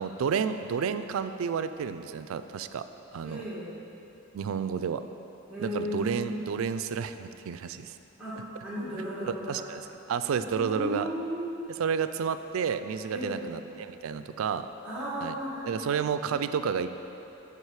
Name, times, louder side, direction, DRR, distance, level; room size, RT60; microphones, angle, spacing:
voice 1, 0.0-2.8 3.1-3.4 4.3-5.0 5.6-7.9 9.3-11.1 11.8-14.7 15.2-15.3 15.7-16.9, right 6 dB, 80° right, 11 dB, 0.3 m, -31 dB
voice 2, 3.2-3.7 5.5-6.5 8.2-9.7 10.3-11.6 13.1-13.5 14.8-16.4, equal, 5° right, -10 dB, 1.7 m, -35 dB
9.6 x 4.9 x 4.8 m, 3.0 s
head